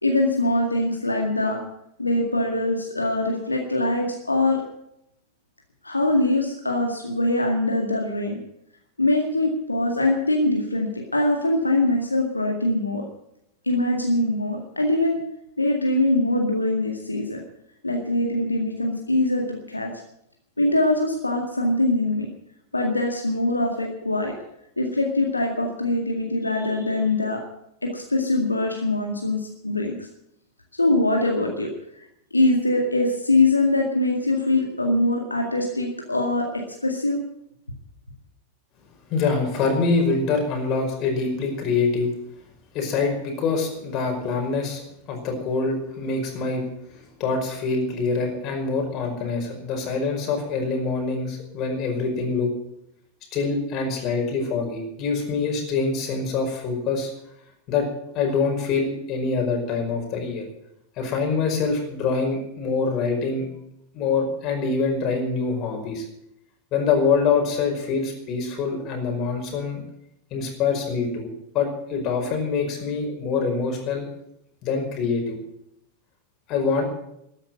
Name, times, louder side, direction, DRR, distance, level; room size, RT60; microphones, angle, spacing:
voice 1, 0.0-1.6 2.0-4.6 5.8-8.4 9.0-13.0 13.6-15.2 15.6-17.4 17.8-19.9 20.6-22.3 22.7-24.3 24.8-27.4 27.8-30.1 30.7-31.7 32.3-36.5 36.8-37.2, left 2 dB, 80° left, 1 dB, 2.0 m, -23 dB
voice 2, 39.1-42.1 42.7-44.8 45.1-46.6 46.9-52.5 53.3-57.1 57.7-57.9 58.1-60.5 61.0-63.5 63.9-66.0 66.7-69.8 70.3-71.3 71.5-74.1 74.6-75.4 76.5-76.8, left 4 dB, 35° left, 2 dB, 5.3 m, -25 dB
13.5 x 10.5 x 9.1 m, 0.79 s
figure-of-eight pair, 90°, 0 cm